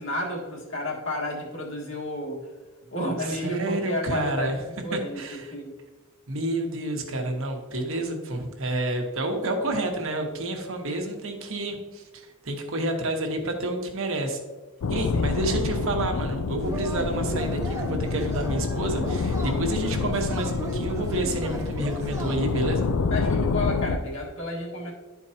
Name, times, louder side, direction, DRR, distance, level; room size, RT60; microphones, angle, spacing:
voice 1, 0.0-2.4 2.9-4.6 4.8-5.7 15.1-15.3 23.1-24.9, left 1 dB, 65° left, -2 dB, 1.7 m, -31 dB
voice 2, 3.2-4.6 4.9-5.5 6.3-14.4 14.9-22.9, right 1 dB, 70° right, 3 dB, 1.1 m, -29 dB
sound 1, 14.8-24.0, left 4 dB, 90° left, 0.4 m, -27 dB
Yell / Cheering, 16.6-22.7, right 2 dB, 15° right, 0.7 m, -36 dB
11.5 x 4.5 x 2.8 m, 1.3 s
head